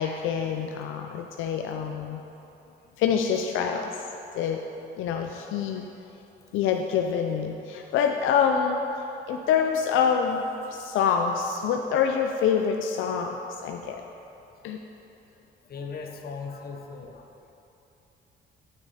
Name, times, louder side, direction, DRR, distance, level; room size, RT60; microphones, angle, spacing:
voice 1, 0.0-2.2 3.0-4.0 4.4-4.6 5.0-5.9 6.5-14.0 14.6-14.8, left 7 dB, 85° left, 3 dB, 0.4 m, -26 dB
voice 2, 15.7-17.2, left 5 dB, 50° left, 3 dB, 0.9 m, -38 dB
8.4 x 6.1 x 4.1 m, 2.9 s
cardioid pair, 90°, 20 cm